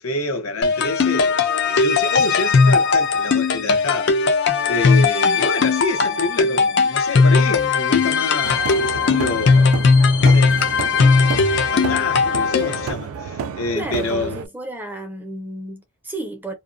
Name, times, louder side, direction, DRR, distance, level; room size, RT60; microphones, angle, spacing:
voice 1, 0.0-9.7 10.2-11.3 11.7-14.4, left 3 dB, 90° left, 0.8 m, -27 dB
sound 1, 0.6-12.9, left 4 dB, 55° left, 0.5 m, -18 dB
sound 2, 8.4-14.5, right 7 dB, 85° right, 0.3 m, -31 dB
voice 2, 13.7-16.5, right 2 dB, 10° right, 0.6 m, -32 dB
2.6 x 2.2 x 2.5 m
head